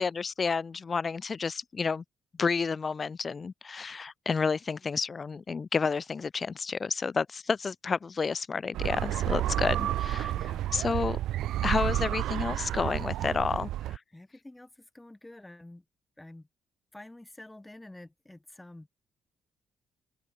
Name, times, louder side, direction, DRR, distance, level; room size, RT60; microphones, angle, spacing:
voice 1, 0.0-2.0 2.4-10.3 10.7-11.2 11.6-14.0, left 5 dB, 35° left, 0.6 m, -30 dB
sound 1, 8.7-14.0, right 13 dB, 85° right, 1.2 m, -30 dB
voice 2, 10.2-10.7 14.1-15.8 16.2-16.5 16.9-18.9, left 1 dB, 10° left, 4.8 m, -49 dB
open air
cardioid pair, 90°, 0 cm